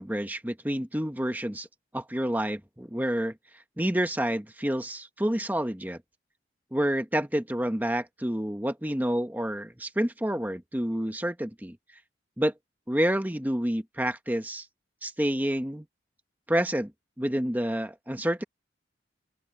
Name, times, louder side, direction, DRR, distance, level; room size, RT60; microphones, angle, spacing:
voice 1, 0.0-1.7 1.9-3.3 3.8-6.0 6.7-11.8 12.4-12.5 12.9-14.7 15.0-15.8 16.5-16.9 17.2-18.4, equal, 10° right, 1.1 m, -28 dB
open air
head